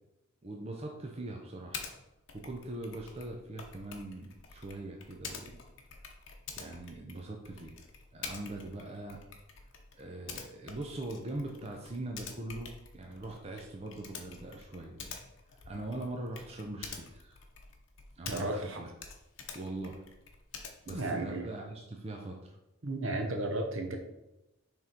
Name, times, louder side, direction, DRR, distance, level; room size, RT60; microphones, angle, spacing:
voice 1, 0.4-1.9 2.3-5.6 6.6-7.8 8.1-9.2 9.9-15.0 15.7-17.4 18.2-18.9 19.5-20.0 20.9-22.4, right 2 dB, 25° right, 1 dB, 0.6 m, -41 dB
Typing, 1.7-1.9 2.3-18.7 19.0-21.2, left 5 dB, 55° left, 0.8 m, -47 dB
voice 2, 18.2-18.8 20.9-21.5 22.8-24.0, right 2 dB, 60° right, 3 dB, 0.9 m, -34 dB
6.1 x 3.6 x 4.5 m, 0.93 s
head